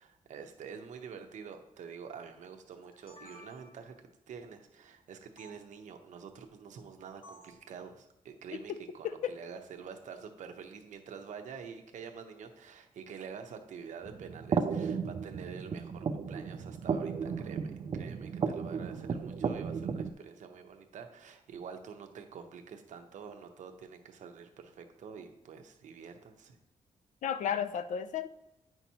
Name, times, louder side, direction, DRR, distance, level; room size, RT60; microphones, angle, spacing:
voice 1, 0.0-3.9 4.3-26.6, right 6 dB, 75° right, 5 dB, 0.8 m, -47 dB
sound 1, 2.7-4.0 5.4-5.5 7.2-7.6, equal, 45° left, 1.1 m, -54 dB
voice 2, 8.7-9.4 27.2-28.3, left 8 dB, 75° left, 11 dB, 0.4 m, -34 dB
sound 2, 14.0-20.1, right 6 dB, 40° right, 0.4 m, -34 dB
9.1 x 5.8 x 2.8 m, 0.87 s
wide cardioid pair, 170°, 13 cm